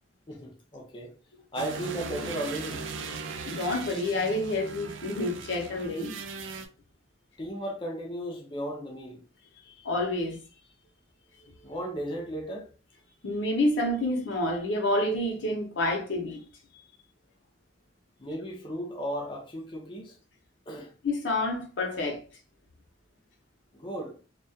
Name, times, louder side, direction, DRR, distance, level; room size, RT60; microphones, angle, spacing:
voice 1, 0.3-1.1 1.5-2.8 7.4-9.2 11.6-12.7 18.2-20.2 20.7-20.9 23.7-24.2, equal, 25° left, 0.5 m, -35 dB
sound 1, 1.5-6.7, right 4 dB, 90° right, 0.4 m, -38 dB
voice 2, 3.5-6.2 9.8-10.4 11.6-11.7 13.2-16.4 21.0-22.2, left 1 dB, 70° left, 0.7 m, -28 dB
2.2 x 2.2 x 2.6 m
head